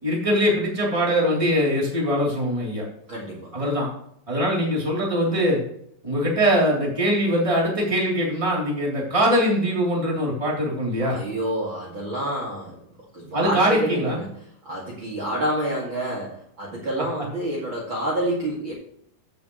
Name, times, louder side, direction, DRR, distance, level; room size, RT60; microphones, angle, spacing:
voice 1, 0.0-2.8 3.5-3.9 4.3-5.6 6.0-11.2 13.3-14.2, equal, 10° right, -4 dB, 2.9 m, -22 dB
voice 2, 3.1-3.6 11.0-12.8 13.1-14.3 14.6-18.7, right 1 dB, 40° right, -4 dB, 2.5 m, -28 dB
16.0 x 7.2 x 3.1 m, 0.69 s
omnidirectional pair, 3.9 m